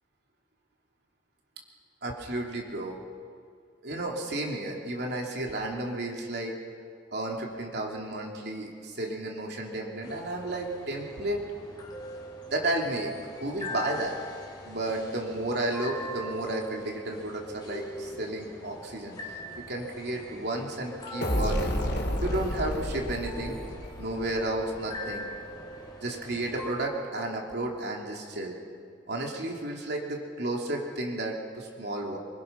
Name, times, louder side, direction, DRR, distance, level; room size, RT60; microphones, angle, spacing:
voice 1, 2.0-3.0 3.8-6.6 7.1-11.4 12.5-14.2 14.6-19.4 19.7-21.8 22.2-23.6 24.0-25.3 26.0-28.6 29.1-32.2, right 1 dB, 60° right, 0 dB, 3.3 m, -32 dB
sound 1, 10.0-26.7, equal, 20° left, 3.8 m, -42 dB
sound 2, 21.2-24.9, left 1 dB, 65° left, 3.8 m, -31 dB
25.5 x 24.0 x 6.0 m, 2.2 s
head